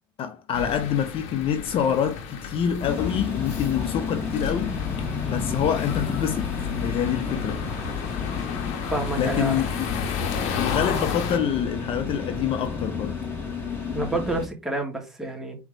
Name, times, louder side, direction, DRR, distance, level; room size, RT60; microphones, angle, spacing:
voice 1, 0.2-4.8 5.2-7.7 9.2-9.9 10.6-13.2, left 8 dB, 50° left, 0.9 m, -26 dB
sound 1, 0.5-11.4, left 7 dB, 65° left, 1.6 m, -32 dB
sound 2, 2.8-14.5, left 5 dB, 20° left, 3.4 m, -31 dB
voice 2, 8.9-9.6 13.9-15.6, right 2 dB, 5° right, 2.9 m, -29 dB
4.8 x 4.4 x 5.2 m
supercardioid pair, 85°, 12 cm